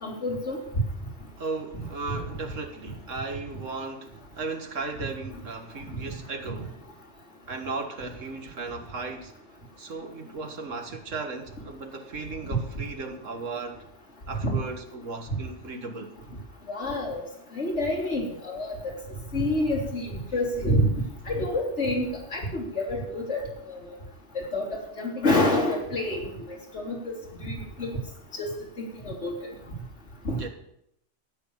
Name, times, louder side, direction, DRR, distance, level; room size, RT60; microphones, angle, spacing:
voice 1, 0.0-0.6 14.4-14.6 15.3-15.4 16.7-17.2 17.5-18.9 19.3-24.0 24.4-26.3 26.7-27.0 27.4-27.9 28.3-28.5 28.8-29.3 30.2-30.4, left 1 dB, 65° left, 3.6 m, -28 dB
voice 2, 1.4-6.8 7.5-9.3 9.8-13.8 14.3-16.1 30.3-30.5, right 3 dB, 80° right, 2.0 m, -36 dB
13.5 x 8.8 x 7.1 m
omnidirectional pair, 1.3 m